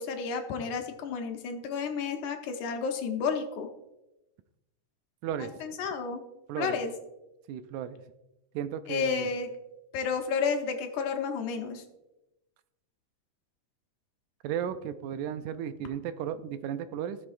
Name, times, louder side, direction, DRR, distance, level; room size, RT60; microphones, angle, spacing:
voice 1, 0.0-3.7 5.4-6.2 6.6-6.9 8.9-9.5 9.9-11.8, left 5 dB, 80° left, 5 dB, 2.3 m, -31 dB
voice 2, 5.2-5.6 6.5-6.8 7.5-8.0 8.5-9.3 14.4-17.2, right 9 dB, 80° right, 11 dB, 1.9 m, -34 dB
15.5 x 6.6 x 2.5 m, 0.96 s
omnidirectional pair, 3.5 m